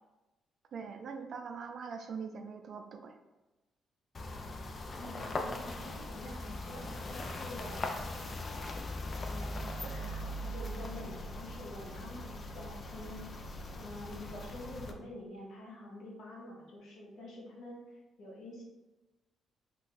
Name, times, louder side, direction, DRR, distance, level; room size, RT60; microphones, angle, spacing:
voice 1, 0.7-3.1, right 5 dB, 60° right, 6 dB, 0.4 m, -42 dB
sound 1, 4.1-14.9, left 1 dB, 40° left, 0.4 m, -40 dB
voice 2, 4.8-8.8 9.2-13.3 13.7-18.6, left 1 dB, 70° left, -3 dB, 0.9 m, -47 dB
2.5 x 2.3 x 4.0 m, 1.1 s
cardioid pair, 90°, 0 cm